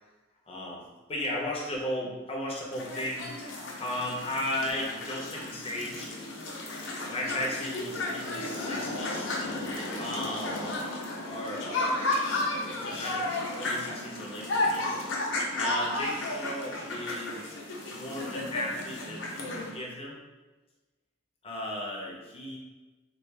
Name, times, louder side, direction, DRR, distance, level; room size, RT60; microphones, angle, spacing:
voice 1, 0.5-6.2 7.1-9.3 10.0-10.6 11.2-12.0 12.7-14.9 15.5-17.5 17.9-20.2 21.4-22.6, left 1 dB, 30° left, -2 dB, 0.7 m, -35 dB
sound 1, 2.7-19.7, left 2 dB, 70° left, 0.7 m, -33 dB
3.4 x 2.4 x 3.3 m, 1.2 s
head